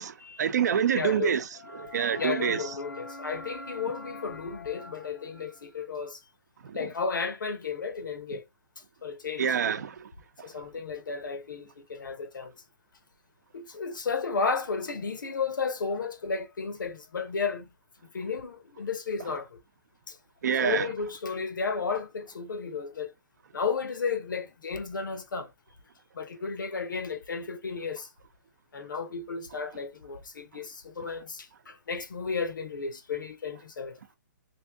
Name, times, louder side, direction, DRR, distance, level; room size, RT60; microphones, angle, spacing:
voice 1, 0.0-1.5 1.7-2.7 6.6-6.9 9.4-10.1 10.4-10.5 20.4-20.9, right 7 dB, 60° right, 0.6 m, -27 dB
voice 2, 0.9-1.3 1.6-6.2 6.7-8.4 9.0-9.4 10.4-12.5 13.5-17.7 18.1-19.6 20.1-20.2 20.6-23.1 23.5-25.5 26.1-28.1 28.7-34.0, left 5 dB, 90° left, 1.1 m, -33 dB
3.3 x 2.7 x 3.5 m
hypercardioid pair, 160°, 10 cm